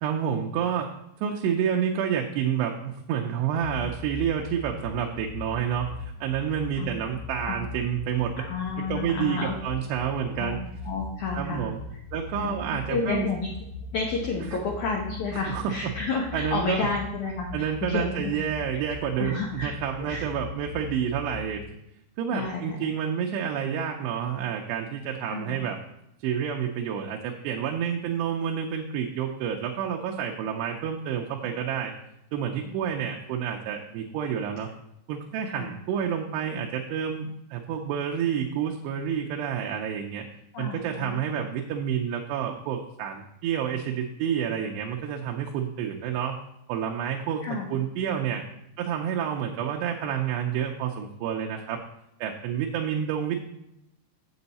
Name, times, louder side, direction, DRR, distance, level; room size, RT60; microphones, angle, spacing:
voice 1, 0.0-0.9 1.2-8.4 8.8-10.6 11.3-11.8 12.1-13.3 14.5-14.6 15.5-15.6 16.3-16.9 17.5-21.6 22.2-25.8 26.2-31.9 32.3-34.7 35.1-40.3 40.6-46.4 46.7-48.4 48.8-51.8 52.2-53.4, right 8 dB, 80° right, 1 dB, 2.8 m, -29 dB
sound 1, 3.6-21.6, left 3 dB, 55° left, 3.8 m, -40 dB
voice 2, 8.4-9.5 10.4-10.6 10.9-11.7 12.4-12.6 12.9-13.5 13.9-18.3 18.6-18.8 19.2-19.7 20.0-20.3 22.3-22.9 25.3-25.6 32.6-32.8 35.5-35.7 40.5-41.2 47.4-47.7, left 4 dB, 75° left, -1 dB, 1.8 m, -31 dB
7.9 x 7.7 x 4.1 m, 0.83 s
omnidirectional pair, 4.9 m